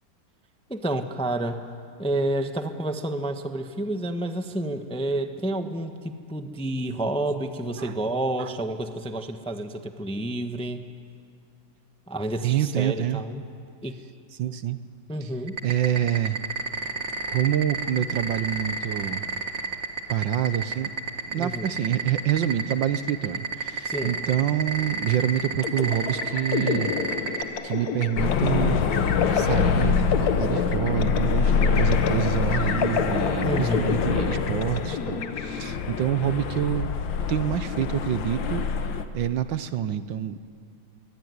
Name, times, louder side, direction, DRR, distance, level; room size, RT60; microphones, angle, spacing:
voice 1, 0.7-1.6 2.0-10.8 12.1-13.4 13.8-14.0 15.1-15.6 21.4-21.7 23.8-24.2 33.4-34.0, right 1 dB, 5° left, 7 dB, 0.8 m, -29 dB
voice 2, 7.8-8.1 8.4-8.5 12.4-13.2 14.4-14.8 15.2-15.3 15.6-16.4 17.3-19.2 20.1-20.9 21.3-26.9 27.6-28.9 29.3-37.0 37.3-38.7 39.1-40.4, right 10 dB, 70° right, 12 dB, 1.5 m, -27 dB
sound 1, 15.5-27.4, right 4 dB, 35° right, 2.0 m, -29 dB
sound 2, 25.6-36.1, left 6 dB, 55° left, 1.5 m, -30 dB
sound 3, 28.2-39.1, left 6 dB, 70° left, 1.9 m, -25 dB
25.0 x 22.5 x 9.6 m, 2.3 s
omnidirectional pair, 2.2 m